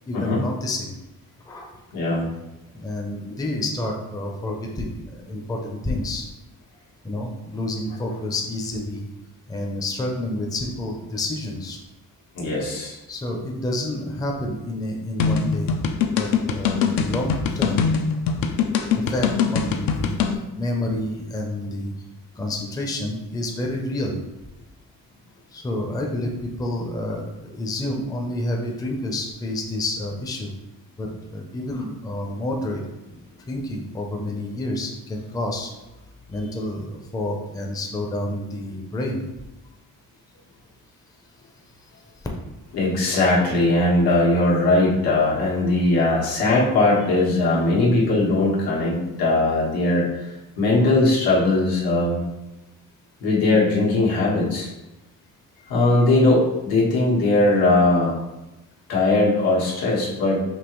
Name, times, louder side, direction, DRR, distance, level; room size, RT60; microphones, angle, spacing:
voice 1, 0.1-0.9 1.5-1.7 2.7-6.3 7.0-9.1 9.5-11.8 13.1-15.7 16.2-17.9 18.9-20.1 20.6-21.9 22.4-24.2 25.5-30.5 31.0-32.8 33.5-35.7 36.3-39.2, left 1 dB, 10° left, 0 dB, 0.5 m, -29 dB
voice 2, 1.9-2.3 12.3-13.0 42.7-52.2 53.2-54.7 55.7-58.1 58.9-60.4, left 2 dB, 85° left, -5 dB, 1.5 m, -20 dB
sound 1, 15.2-20.4, left 6 dB, 70° left, 0.5 m, -22 dB
5.3 x 2.9 x 3.0 m, 1.0 s
cardioid pair, 140°, 35 cm